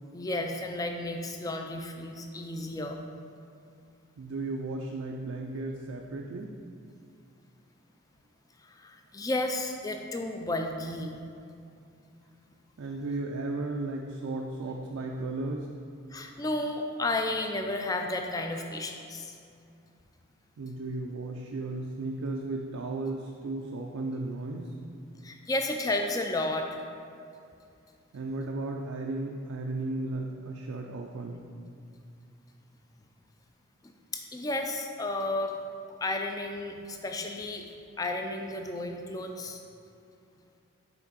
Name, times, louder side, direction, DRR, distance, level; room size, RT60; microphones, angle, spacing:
voice 1, 0.1-3.0 8.6-11.2 16.1-19.4 25.2-26.7 34.1-35.5 36.0-37.6 38.0-39.6, left 2 dB, 15° left, 4 dB, 0.3 m, -32 dB
voice 2, 4.2-6.5 12.8-15.7 20.6-24.7 28.1-31.4, right 2 dB, 80° right, 1 dB, 0.4 m, -35 dB
5.9 x 4.4 x 4.0 m, 2.5 s
head